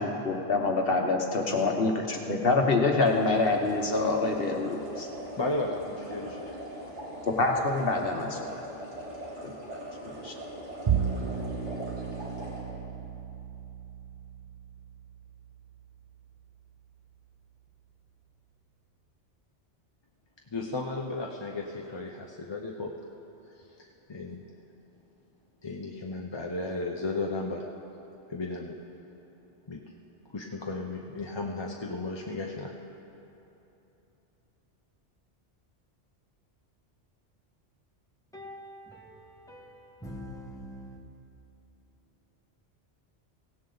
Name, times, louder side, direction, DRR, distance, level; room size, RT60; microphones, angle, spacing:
voice 1, 0.0-5.1 7.2-8.6 9.4-9.5 10.2-10.3, left 3 dB, 55° left, 1.2 m, -26 dB
sound 1, 3.0-12.6, equal, 90° right, 3.4 m, -41 dB
voice 2, 5.4-6.5 20.5-22.9 23.8-24.4 25.6-27.6 28.3-28.8 29.7-29.8 30.3-32.7, left 2 dB, 30° left, 0.7 m, -34 dB
Bowed string instrument, 10.9-17.3, right 7 dB, 45° right, 0.5 m, -35 dB
voice 3, 38.3-41.0, equal, 5° left, 1.2 m, -44 dB
17.5 x 16.5 x 3.9 m
omnidirectional pair, 1.2 m